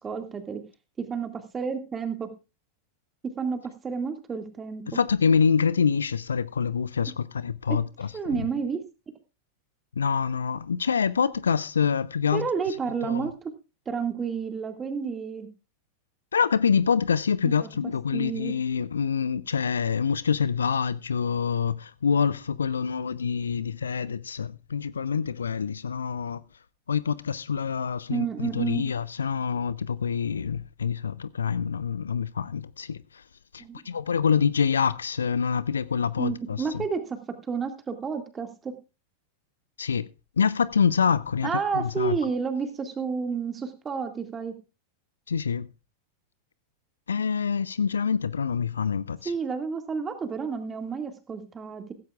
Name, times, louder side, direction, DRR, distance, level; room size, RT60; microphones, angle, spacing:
voice 1, 0.0-0.6 1.0-2.3 3.2-4.8 7.7-7.8 8.1-8.8 12.3-13.3 13.9-15.5 17.4-17.7 18.1-18.5 28.1-28.8 33.6-33.8 36.2-37.2 37.5-38.7 41.4-44.5 49.3-51.9, right 5 dB, 20° right, 2.1 m, -30 dB
voice 2, 4.9-8.4 10.0-12.5 13.0-13.3 16.3-26.4 26.9-33.0 33.5-36.8 39.8-40.1 40.4-42.1 45.3-45.7 47.1-49.3, left 6 dB, 70° left, 0.5 m, -26 dB
16.0 x 15.0 x 2.4 m
figure-of-eight pair, 90°, 0 cm